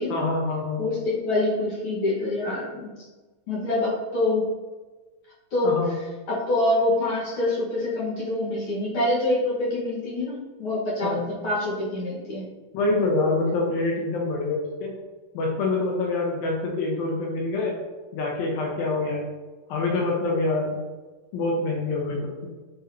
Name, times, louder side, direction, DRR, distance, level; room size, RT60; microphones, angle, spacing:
voice 1, 0.1-0.8 5.6-6.0 11.0-11.3 12.7-14.9 15.3-17.8 18.1-19.3 19.7-20.8 21.3-22.5, left 2 dB, 85° left, -1 dB, 2.8 m, -26 dB
voice 2, 0.8-2.9 3.5-4.5 5.5-5.8 6.3-11.2 11.4-12.4, left 2 dB, 55° left, -6 dB, 1.5 m, -25 dB
8.9 x 4.0 x 2.7 m, 1.3 s
omnidirectional pair, 4.1 m